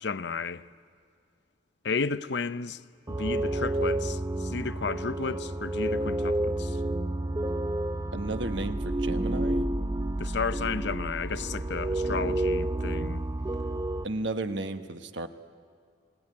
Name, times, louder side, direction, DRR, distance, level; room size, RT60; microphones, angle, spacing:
voice 1, 0.0-0.6 1.8-2.8 3.1-6.8 10.2-13.3, left 4 dB, 70° left, 0.7 m, -33 dB
sound 1, 3.1-14.0, right 1 dB, 20° right, 0.6 m, -30 dB
voice 2, 8.1-9.7 14.0-15.3, right 2 dB, 80° right, 1.3 m, -33 dB
28.0 x 18.5 x 9.7 m
head